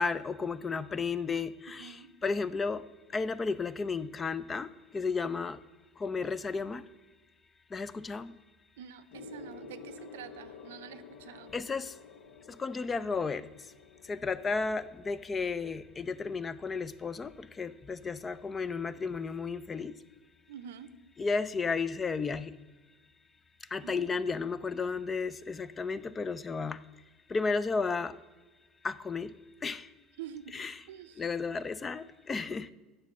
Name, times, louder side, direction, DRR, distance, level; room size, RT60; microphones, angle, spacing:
voice 1, 0.0-2.9 3.1-5.6 6.0-6.9 7.7-8.4 11.5-12.0 12.5-13.7 14.0-20.0 21.2-22.5 23.7-26.8 27.3-28.2 28.8-29.4 29.6-29.9 30.5-30.7 31.2-32.7, left 4 dB, 25° left, 0.4 m, -33 dB
voice 2, 1.8-2.1 8.8-11.5 20.5-21.0 23.8-24.1 30.2-30.6 30.9-31.2, right 9 dB, 85° right, 0.5 m, -47 dB
Gong, 9.1-18.9 19.8-20.1, left 4 dB, 75° left, 0.7 m, -52 dB
8.1 x 6.6 x 7.3 m
hypercardioid pair, 90°, 0 cm